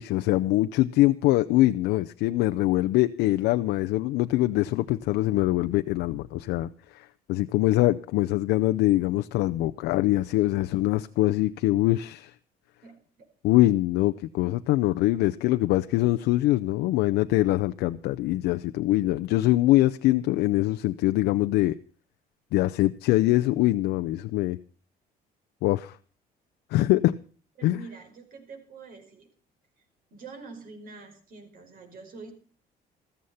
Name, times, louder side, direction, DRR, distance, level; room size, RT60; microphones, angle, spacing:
voice 1, 0.0-12.3 13.4-21.8 22.5-24.6 25.6-26.0 26.7-27.2 27.6-27.8, left 16 dB, 90° left, 10 dB, 0.6 m, -23 dB
voice 2, 27.6-29.3 30.1-32.3, right 4 dB, 55° right, 6 dB, 5.1 m, -45 dB
14.5 x 14.5 x 5.6 m, 0.41 s
cardioid pair, 110°, 17 cm